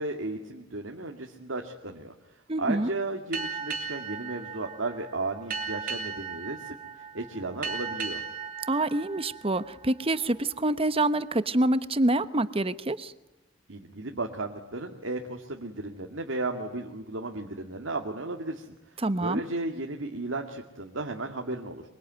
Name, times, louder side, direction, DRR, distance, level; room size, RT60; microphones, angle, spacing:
voice 1, 0.0-2.1 2.6-8.2 13.7-18.7 19.2-21.8, right 2 dB, 75° right, 3 dB, 2.1 m, -34 dB
voice 2, 2.5-2.9 8.7-13.1 19.0-19.4, right 2 dB, 30° right, 14 dB, 1.0 m, -26 dB
Boat Water vehicle, 3.3-10.4, right 5 dB, 45° right, 3.4 m, -37 dB
24.5 x 23.5 x 9.4 m, 0.97 s
head